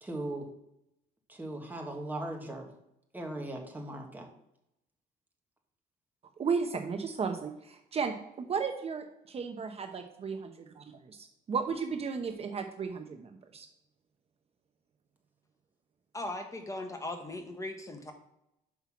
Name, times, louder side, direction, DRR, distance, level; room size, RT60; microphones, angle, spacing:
voice 1, 0.0-0.5 1.3-2.7 3.1-4.3, right 1 dB, 10° right, 1 dB, 1.6 m, -38 dB
voice 2, 6.4-13.7, right 5 dB, 35° right, 5 dB, 0.8 m, -35 dB
voice 3, 16.1-18.1, left 2 dB, 20° left, 5 dB, 1.2 m, -38 dB
5.9 x 5.5 x 6.0 m, 0.84 s
cardioid pair, 110°, 17 cm